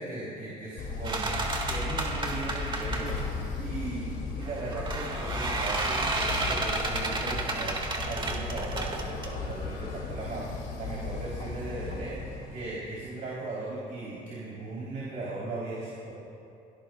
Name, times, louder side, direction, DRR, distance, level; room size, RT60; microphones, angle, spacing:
voice 1, 0.0-16.2, right 2 dB, 55° right, -6 dB, 3.7 m, -38 dB
sound 1, 0.8-12.6, left 4 dB, 70° left, 2.7 m, -36 dB
sound 2, 1.0-3.4 4.4-9.8, right 2 dB, 30° right, 1.9 m, -32 dB
23.5 x 17.5 x 2.4 m, 2.6 s
cardioid pair, 110°, 17 cm